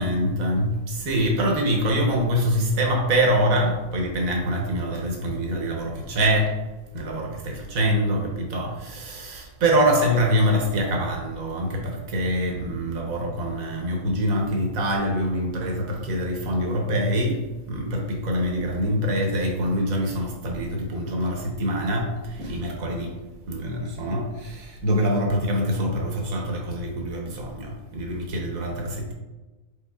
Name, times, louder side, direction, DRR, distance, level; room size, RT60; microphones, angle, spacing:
voice 1, 0.0-6.5 6.9-17.4 17.7-23.2 23.5-29.1, equal, 70° right, 0 dB, 1.2 m, -24 dB
4.8 x 4.5 x 2.3 m, 1.1 s
omnidirectional pair, 1.5 m